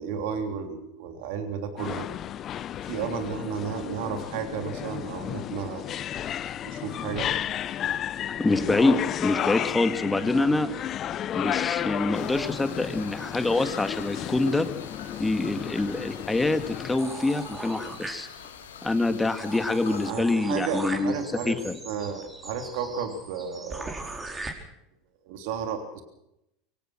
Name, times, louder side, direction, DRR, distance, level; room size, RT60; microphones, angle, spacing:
voice 1, 0.0-2.1 2.8-5.9 6.6-7.3 19.8-21.6 21.8-23.9 25.2-26.0, right 6 dB, 65° right, 6 dB, 3.3 m, -33 dB
sound 1, 1.8-17.0, left 10 dB, 40° left, 0.8 m, -33 dB
voice 2, 8.4-10.7 11.3-14.7 15.2-18.3 18.8-21.2 21.4-21.8, left 2 dB, 10° left, 9 dB, 2.3 m, -25 dB
sound 2, 12.1-20.1, left 7 dB, 80° left, 2.3 m, -44 dB
sound 3, 17.0-18.7 19.1-19.2 19.4-24.5, right 2 dB, 15° right, 4.7 m, -39 dB
24.5 x 17.5 x 6.3 m, 0.83 s
hypercardioid pair, 80°, 0 cm